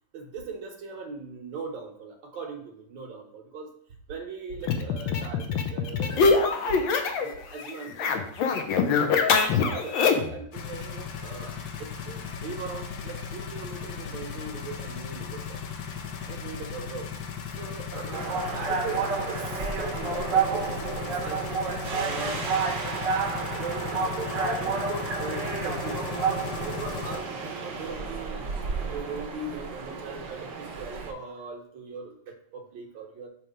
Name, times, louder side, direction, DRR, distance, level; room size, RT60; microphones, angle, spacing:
voice 1, 0.1-3.7 4.1-6.9 7.2-8.4 9.0-9.1 9.6-15.6 16.3-17.1 17.6-18.2 18.5-21.4 21.9-22.5 23.5-26.2 26.5-33.3, right 4 dB, 75° right, 1 dB, 1.7 m, -39 dB
sound 1, 4.6-7.3 7.6-10.4, left 5 dB, 80° left, 1.4 m, -24 dB
sound 2, 10.5-27.2, left 6 dB, 65° left, 1.1 m, -37 dB
sound 3, 18.1-31.1, right 5 dB, 55° right, 1.0 m, -30 dB
7.7 x 2.9 x 5.0 m, 0.66 s
omnidirectional pair, 2.1 m